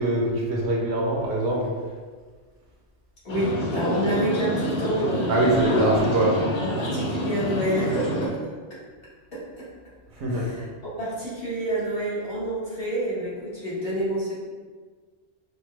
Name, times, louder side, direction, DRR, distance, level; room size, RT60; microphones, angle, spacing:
voice 1, 0.0-1.6 5.3-6.4 10.2-10.5, right 1 dB, 70° right, -3 dB, 1.0 m, -23 dB
voice 2, 3.2-5.3 6.2-6.3 6.6-8.5 9.3-9.7 10.3-10.7 11.0-14.3, right 1 dB, 55° left, -9 dB, 1.5 m, -28 dB
sound 1, 3.3-8.3, equal, 85° left, 1.1 m, -27 dB
4.2 x 2.2 x 3.2 m, 1.5 s
omnidirectional pair, 1.2 m